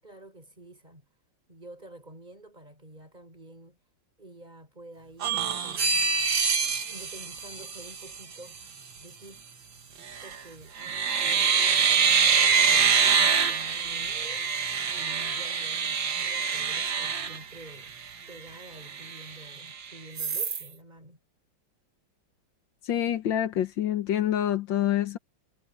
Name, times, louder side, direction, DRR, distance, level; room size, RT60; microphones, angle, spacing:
voice 1, 0.0-1.0 1.5-3.9 4.2-6.0 6.8-8.6 9.0-9.5 10.2-14.4 14.9-18.0 18.3-21.2, right 1 dB, 20° right, 6.5 m, -49 dB
sound 1, 5.2-8.2 10.0-10.4 10.8-18.0 18.5-18.6 18.9-19.7 20.2-20.7, right 6 dB, 80° right, 2.5 m, -25 dB
voice 2, 22.8-25.2, left 11 dB, 85° left, 1.8 m, -26 dB
omnidirectional pair, 2.0 m